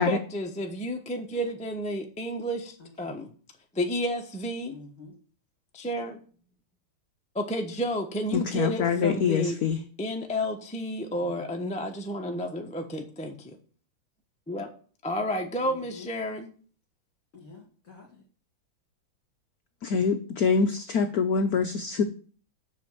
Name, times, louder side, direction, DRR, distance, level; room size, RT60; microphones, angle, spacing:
voice 1, 0.0-2.7 3.0-3.3 3.8-4.7 5.7-6.2 7.3-9.6 10.0-13.3 14.5-14.7 15.0-16.5, equal, 5° left, 2 dB, 0.6 m, -31 dB
voice 2, 2.8-3.2 4.7-5.2 11.1-11.4 15.5-16.1 17.3-18.2, left 3 dB, 35° left, -2 dB, 2.4 m, -48 dB
voice 3, 8.3-9.8 19.8-22.0, left 5 dB, 70° left, 7 dB, 0.9 m, -25 dB
7.5 x 6.1 x 7.6 m, 0.43 s
omnidirectional pair, 2.4 m